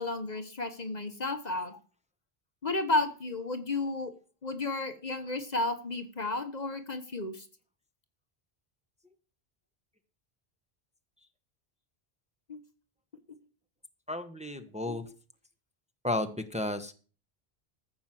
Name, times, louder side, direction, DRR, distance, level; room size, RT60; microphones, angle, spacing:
voice 1, 0.0-1.7 2.6-4.1 4.4-7.4 12.5-12.6 14.9-15.0, left 2 dB, 45° left, 9 dB, 1.1 m, -32 dB
voice 2, 14.1-15.0 16.0-16.9, left 2 dB, 5° right, 7 dB, 1.1 m, -33 dB
14.5 x 6.2 x 7.6 m, 0.38 s
omnidirectional pair, 1.0 m